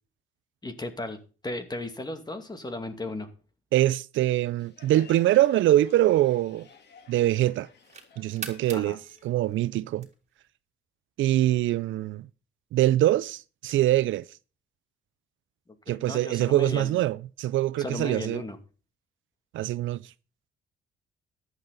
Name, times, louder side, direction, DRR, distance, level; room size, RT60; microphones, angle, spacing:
voice 1, 0.6-1.2 1.4-3.3 8.7-9.0 15.9-17.0 17.8-18.6, left 2 dB, 20° left, 2.4 m, -35 dB
voice 2, 3.7-6.7 7.1-7.7 8.2-10.1 11.2-12.3 12.7-14.3 15.9-18.4 19.5-20.0, right 14 dB, 75° right, 0.5 m, -24 dB
Crowd, 4.6-10.0, left 5 dB, 60° left, 2.8 m, -54 dB
sound 1, 6.2-7.0 7.5-10.5, right 5 dB, 35° right, 2.9 m, -44 dB
14.5 x 11.0 x 4.0 m
cardioid pair, 90°, 20 cm